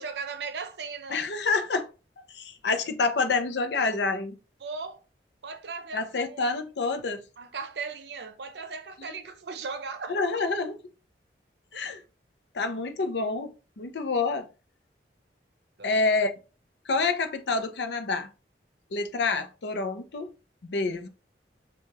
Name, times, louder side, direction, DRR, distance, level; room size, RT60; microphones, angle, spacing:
voice 1, 0.0-1.2 4.6-5.0 5.4-6.6 7.4-10.2 15.8-16.0, right 4 dB, 75° right, 0.6 m, -37 dB
voice 2, 1.1-1.9 2.3-4.4 5.9-7.2 10.1-10.8 11.7-12.0 12.5-13.5 13.8-14.5 15.8-16.3 16.9-18.3 18.9-20.3 20.6-21.1, left 3 dB, 80° left, 0.6 m, -27 dB
4.5 x 2.3 x 2.9 m
head